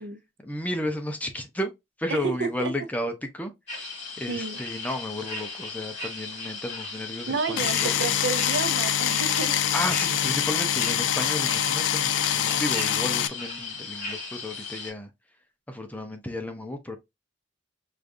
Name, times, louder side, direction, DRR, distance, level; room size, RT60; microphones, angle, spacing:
voice 1, 0.4-1.7 2.0-3.5 4.2-8.1 9.7-15.1 15.7-17.0, left 1 dB, 10° left, 0.5 m, -33 dB
voice 2, 2.1-2.7 4.3-4.6 7.3-9.6, right 5 dB, 65° right, 0.5 m, -30 dB
sound 1, 3.7-14.9, left 3 dB, 35° left, 2.7 m, -37 dB
sound 2, 7.6-13.3, left 10 dB, 70° left, 0.4 m, -25 dB
5.0 x 2.4 x 2.5 m
head